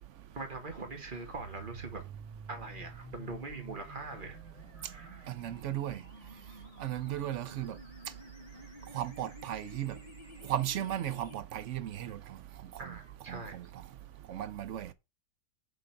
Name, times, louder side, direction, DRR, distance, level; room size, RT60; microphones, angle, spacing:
voice 1, 0.3-2.0 2.5-4.4 4.7-5.3 12.8-13.5, right 3 dB, 30° right, 1.7 m, -42 dB
sound 1, 1.3-11.3, right 2 dB, 20° left, 2.4 m, -50 dB
voice 2, 5.3-6.0 6.8-7.7 8.9-9.9 10.5-12.2 13.3-13.6 14.3-14.9, right 12 dB, 65° right, 0.8 m, -35 dB
6.4 x 3.9 x 5.8 m
omnidirectional pair, 1.8 m